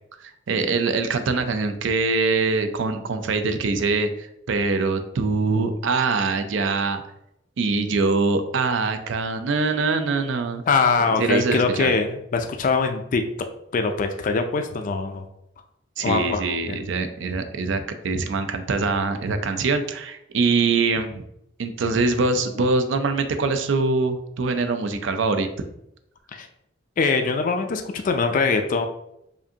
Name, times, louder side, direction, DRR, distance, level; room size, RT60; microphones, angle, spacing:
voice 1, 0.2-7.0 7.6-10.6 11.2-11.9 16.0-21.2 21.6-25.5, right 3 dB, 80° right, 8 dB, 0.5 m, -23 dB
voice 2, 10.7-13.2 13.7-15.3 16.0-16.8 26.3-26.5 27.0-28.9, left 4 dB, 45° left, 6 dB, 0.3 m, -23 dB
5.0 x 2.6 x 2.7 m, 0.80 s
head